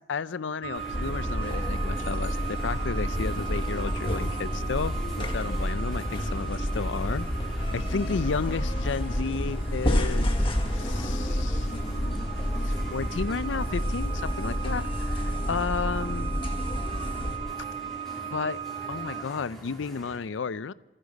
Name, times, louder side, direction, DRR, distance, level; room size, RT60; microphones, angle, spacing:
voice 1, 0.0-10.4 10.7-11.7 12.6-16.4 18.3-18.6 18.9-20.7, left 5 dB, 90° left, 17 dB, 0.5 m, -33 dB
sound 1, 0.6-19.2, right 8 dB, 30° right, 0.5 m, -39 dB
sound 2, 0.7-20.2, equal, ahead, 3.9 m, -44 dB
sound 3, 0.9-17.4, equal, 30° left, 1.5 m, -29 dB
27.5 x 9.9 x 5.3 m, 1.0 s
head